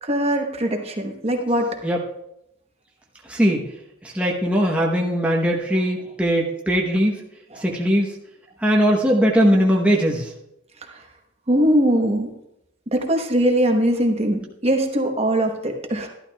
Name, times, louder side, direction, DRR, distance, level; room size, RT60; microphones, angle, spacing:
voice 1, 0.0-1.8 7.5-7.6 10.8-11.0 11.5-12.3 12.9-16.1, right 1 dB, 30° right, 3 dB, 1.0 m, -21 dB
voice 2, 3.2-3.7 4.0-7.2 7.6-8.1 8.6-10.3, equal, 5° right, -2 dB, 0.9 m, -20 dB
12.5 x 12.0 x 2.3 m, 0.82 s
head